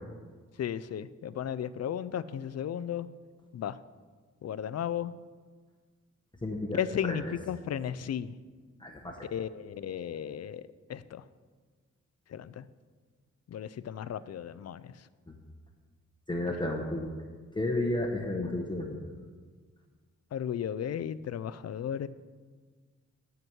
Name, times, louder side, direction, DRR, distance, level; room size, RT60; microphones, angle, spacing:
voice 1, 0.6-3.1 3.5-3.8 4.4-5.1 6.7-8.4 9.3-11.2 12.3-12.7 13.5-14.9 20.3-22.1, left 9 dB, 60° left, 16 dB, 0.4 m, -35 dB
voice 2, 6.4-6.8 7.1-7.2 8.8-9.2 16.3-17.1 17.5-19.0, left 1 dB, 15° left, 1 dB, 0.9 m, -32 dB
10.5 x 6.0 x 7.8 m, 1.5 s
wide cardioid pair, 170°, 30 cm